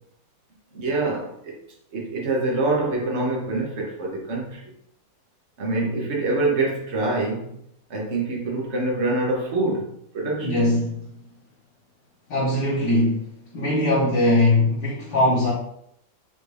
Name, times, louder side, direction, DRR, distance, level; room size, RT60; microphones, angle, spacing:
voice 1, 0.7-1.6 1.9-4.7 5.6-7.5 7.9-10.6, right 2 dB, 70° right, 0.6 m, -25 dB
voice 2, 10.4-11.1 12.3-15.5, left 1 dB, 55° left, 1.6 m, -21 dB
5.7 x 2.5 x 3.2 m
omnidirectional pair, 2.4 m